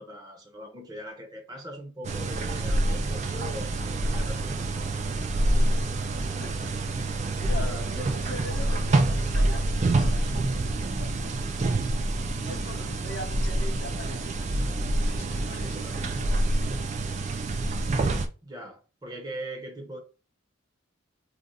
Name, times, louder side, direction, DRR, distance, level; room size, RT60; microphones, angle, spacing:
voice 1, 0.0-5.2 7.4-8.1 12.7-12.9 15.6-16.0 18.4-20.0, equal, 20° right, 0.8 m, -41 dB
sound 1, 2.0-18.3, right 2 dB, 35° right, 0.3 m, -27 dB
voice 2, 5.5-5.9 6.2-7.0 7.3-11.4 12.3-14.6 15.0-16.4, left 2 dB, 60° left, 0.8 m, -42 dB
2.5 x 2.4 x 4.0 m
head